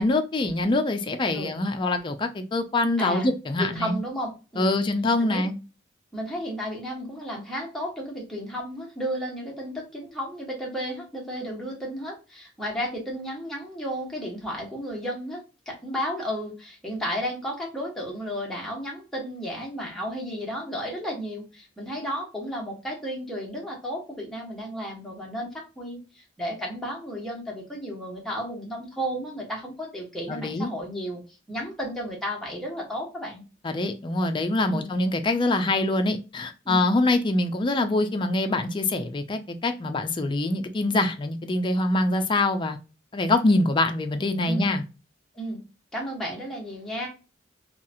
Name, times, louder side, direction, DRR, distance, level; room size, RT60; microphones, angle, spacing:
voice 1, 0.0-4.0 4.6-5.5 30.3-30.7 33.6-42.8 43.1-44.8, left 2 dB, 25° left, 0.4 m, -24 dB
voice 2, 3.0-3.3 3.6-4.7 5.2-5.5 6.1-15.4 15.7-31.2 31.5-33.4 34.7-34.9 36.6-36.9 44.4-44.7 45.3-45.6 45.9-47.1, equal, ahead, 1.0 m, -33 dB
2.8 x 2.3 x 2.5 m
head